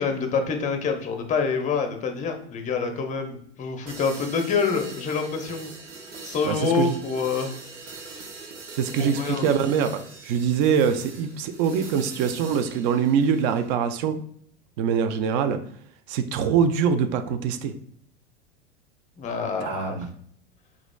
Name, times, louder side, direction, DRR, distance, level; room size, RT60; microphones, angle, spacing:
voice 1, 0.0-5.7 6.2-7.5 9.0-9.5 19.2-20.0, left 5 dB, 20° left, 5 dB, 0.7 m, -26 dB
sound 1, 3.9-13.7, right 4 dB, 80° right, 0.9 m, -42 dB
voice 2, 6.4-7.0 8.7-14.2 14.8-15.6 16.1-17.7 19.6-20.1, right 7 dB, 35° right, 9 dB, 0.5 m, -24 dB
4.9 x 3.6 x 2.2 m, 0.63 s
figure-of-eight pair, 85°, 36 cm